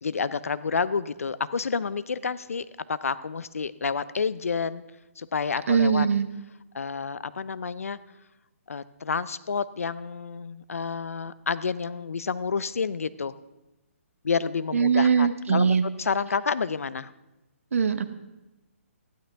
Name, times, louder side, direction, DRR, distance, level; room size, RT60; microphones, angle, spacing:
voice 1, 0.0-4.8 5.2-6.1 6.7-8.0 8.7-13.3 14.2-17.1, left 5 dB, 85° left, 16 dB, 0.6 m, -29 dB
voice 2, 5.7-6.3 14.7-15.8 17.7-18.0, right 6 dB, 75° right, 11 dB, 1.0 m, -21 dB
15.0 x 11.5 x 3.5 m, 1.0 s
hypercardioid pair, 150°, 8 cm